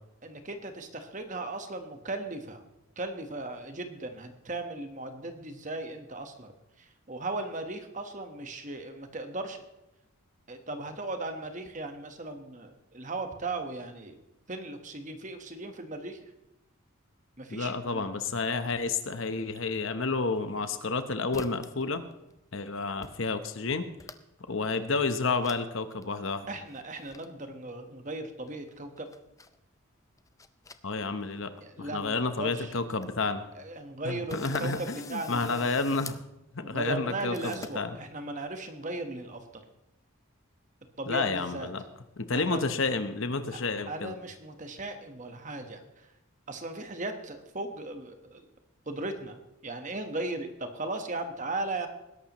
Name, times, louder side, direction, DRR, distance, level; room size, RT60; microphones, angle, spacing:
voice 1, 0.2-2.6 3.0-6.5 6.8-9.6 10.5-14.2 14.5-16.2 17.4-18.1 26.5-29.1 31.6-32.7 33.5-35.8 36.6-39.6 41.0-41.7 42.3-42.6 43.5-43.6 43.9-45.8 46.5-48.5 48.9-51.9, right 2 dB, 35° right, 6 dB, 1.3 m, -37 dB
voice 2, 17.5-22.0 22.5-23.9 24.5-26.5 30.8-31.5 31.8-33.4 34.0-36.2 36.5-38.0 41.1-41.8 42.2-44.1, left 3 dB, 60° left, 10 dB, 1.0 m, -30 dB
sound 1, 20.4-21.0 21.3-21.8 22.1-22.6 23.0-23.1 23.4-24.4 24.8-24.9 25.4-25.6 25.9-26.1 26.7-27.3 28.5-29.6 30.1-31.2 31.5-31.6 32.2-32.3 32.5-32.6 32.8-33.1 33.6-33.7 34.3-36.2 37.3-37.8, left 4 dB, 15° left, 0.5 m, -46 dB
20.0 x 11.0 x 3.1 m, 0.95 s
head